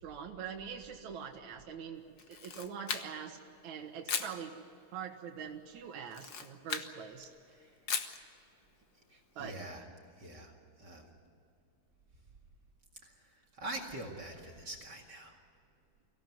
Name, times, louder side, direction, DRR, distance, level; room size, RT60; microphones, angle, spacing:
voice 1, 0.0-4.5 4.9-7.3 9.4-9.6, right 7 dB, 70° right, 1 dB, 2.7 m, -44 dB
Camera, 2.2-3.4 4.1-4.4 6.1-6.9 7.9-8.2, left 6 dB, 55° left, 1.1 m, -37 dB
voice 2, 9.1-9.8 10.2-10.5 10.8-11.1 13.0-15.4, right 1 dB, 35° right, 1 dB, 2.4 m, -45 dB
24.0 x 17.0 x 9.4 m, 2.5 s
omnidirectional pair, 3.5 m